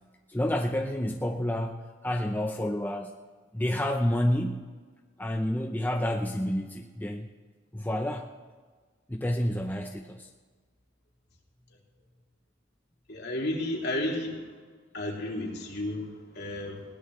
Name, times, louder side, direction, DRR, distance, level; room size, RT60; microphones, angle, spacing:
voice 1, 0.3-3.2 3.5-4.6 5.2-7.3 7.7-8.3 9.1-10.3, left 1 dB, 10° left, 3 dB, 0.6 m, -29 dB
voice 2, 13.1-14.4 14.9-16.8, left 1 dB, 55° left, -1 dB, 2.9 m, -32 dB
20.5 x 17.0 x 3.2 m, 1.5 s
head